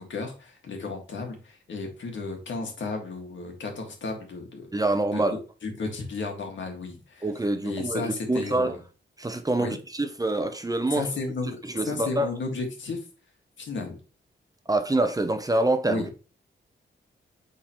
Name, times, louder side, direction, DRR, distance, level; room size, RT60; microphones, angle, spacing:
voice 1, 0.0-4.7 5.1-7.3 7.6-8.8 9.6-9.8 10.9-11.6 11.9-13.0 13.6-14.0 15.8-16.2, left 3 dB, 75° left, 1.9 m, -33 dB
voice 2, 4.7-5.4 7.2-8.8 9.2-11.1 11.6-12.3 14.7-16.0, right 2 dB, 20° right, 0.8 m, -26 dB
8.3 x 3.8 x 3.0 m
cardioid pair, 85°, 20 cm